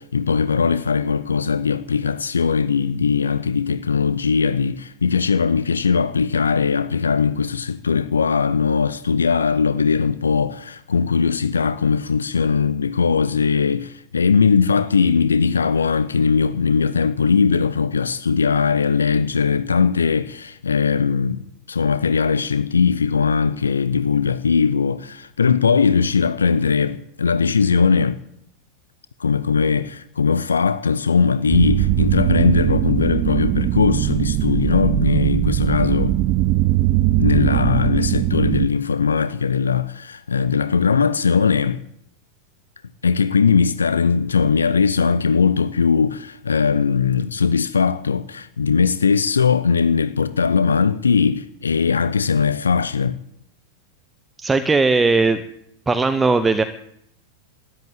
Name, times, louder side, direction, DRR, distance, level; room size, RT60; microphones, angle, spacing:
voice 1, 0.0-28.2 29.2-36.2 37.2-41.8 43.0-53.2, left 5 dB, 75° left, 0.6 m, -19 dB
sound 1, 31.5-38.7, right 15 dB, 35° right, 0.5 m, -20 dB
voice 2, 54.4-55.4 55.9-56.6, right 3 dB, 10° right, 0.9 m, -17 dB
13.5 x 11.5 x 9.0 m
figure-of-eight pair, 90°, 0 cm